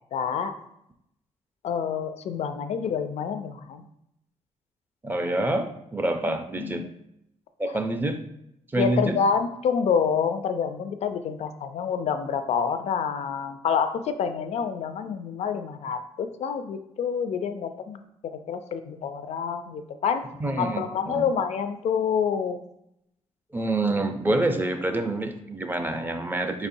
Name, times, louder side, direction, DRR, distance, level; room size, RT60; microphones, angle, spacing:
voice 1, 0.1-0.5 1.6-3.8 6.3-6.9 8.7-18.0 18.5-20.2 20.6-22.6, left 6 dB, 60° left, 9 dB, 0.4 m, -27 dB
voice 2, 5.0-6.9 7.6-8.2 8.7-9.2 20.4-21.3 23.5-26.7, right 2 dB, 15° right, 6 dB, 0.4 m, -27 dB
5.0 x 4.1 x 2.6 m, 0.78 s
cardioid pair, 140°, 12 cm